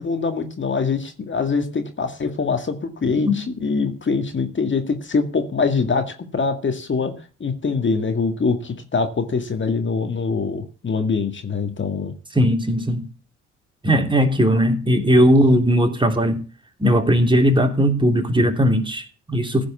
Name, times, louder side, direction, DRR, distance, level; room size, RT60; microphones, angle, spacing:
voice 1, 0.0-7.1 7.4-12.1, left 4 dB, 35° left, 1.9 m, -23 dB
voice 2, 12.3-13.1 13.8-16.4 16.8-19.7, equal, 15° right, 3.2 m, -18 dB
15.5 x 5.2 x 8.3 m
hypercardioid pair, 45°, 34 cm